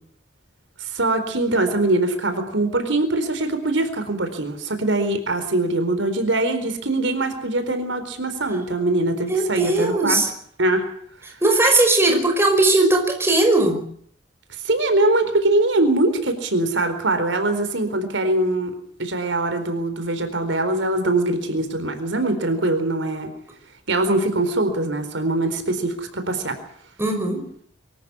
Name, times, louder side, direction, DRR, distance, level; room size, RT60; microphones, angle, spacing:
voice 1, 0.8-10.2 10.6-10.9 14.5-18.7 19.0-23.3 23.9-26.6, right 2 dB, 80° right, 8 dB, 4.3 m, -22 dB
voice 2, 9.3-10.3 11.4-13.8 27.0-27.4, right 2 dB, 15° right, 3 dB, 5.3 m, -18 dB
24.5 x 14.0 x 9.7 m, 0.63 s
head